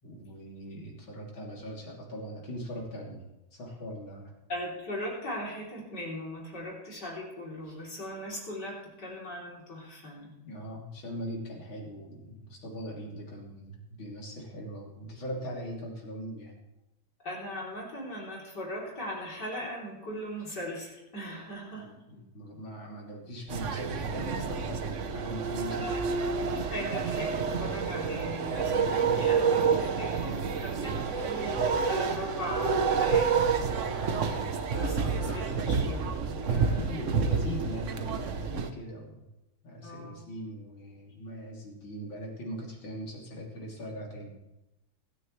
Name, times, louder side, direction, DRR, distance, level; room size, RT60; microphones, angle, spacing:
voice 1, 0.0-3.2 3.5-4.3 10.4-16.6 21.7-26.1 34.0-34.3 36.5-39.3 39.6-44.4, equal, 75° left, -2 dB, 3.9 m, -40 dB
voice 2, 4.5-10.3 17.2-21.9 25.6-33.3 34.7-36.9 39.8-40.2, equal, 55° left, -4 dB, 4.0 m, -39 dB
sound 1, 23.5-38.7, right 5 dB, 55° right, 0.9 m, -29 dB
sound 2, 29.6-35.4, right 1 dB, 20° right, 3.1 m, -51 dB
25.5 x 9.6 x 3.2 m, 0.99 s
omnidirectional pair, 2.2 m